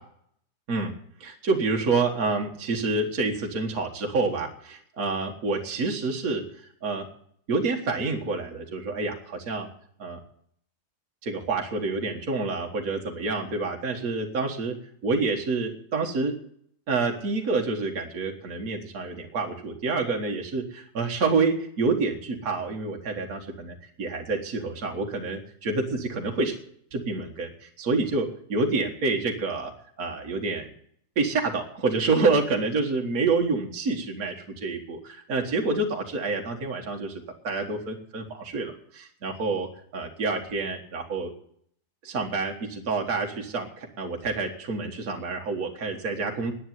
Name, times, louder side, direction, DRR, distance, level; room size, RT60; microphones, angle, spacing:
voice 1, 1.2-7.1 7.5-9.7 10.0-10.2 11.2-14.8 15.0-16.4 16.9-26.6 26.9-29.7 30.0-30.7 31.2-41.3 42.0-46.5, right 3 dB, 60° right, 1 dB, 2.0 m, -28 dB
10.5 x 9.8 x 9.3 m, 0.66 s
omnidirectional pair, 1.8 m